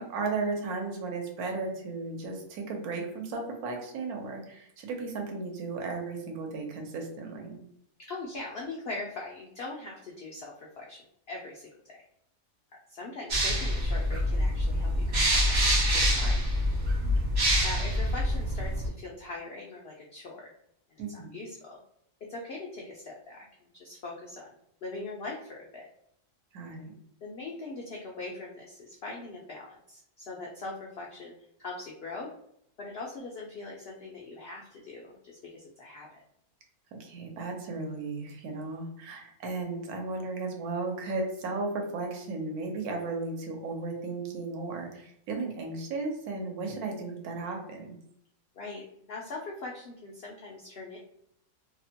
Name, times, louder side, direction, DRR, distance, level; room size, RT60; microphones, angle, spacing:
voice 1, 0.0-7.6 17.0-17.5 21.0-21.3 26.5-26.9 36.9-48.0, right 3 dB, 80° right, 2 dB, 1.1 m, -35 dB
voice 2, 8.1-11.0 11.3-12.0 12.9-15.6 15.9-16.4 17.6-20.5 20.9-21.8 22.3-24.5 24.8-25.9 27.2-31.3 31.6-32.3 32.8-36.2 48.5-51.0, left 2 dB, 80° left, -2 dB, 0.5 m, -41 dB
sound 1, 13.3-18.9, equal, 50° right, 0.7 m, -26 dB
2.7 x 2.1 x 2.7 m, 0.73 s
omnidirectional pair, 1.6 m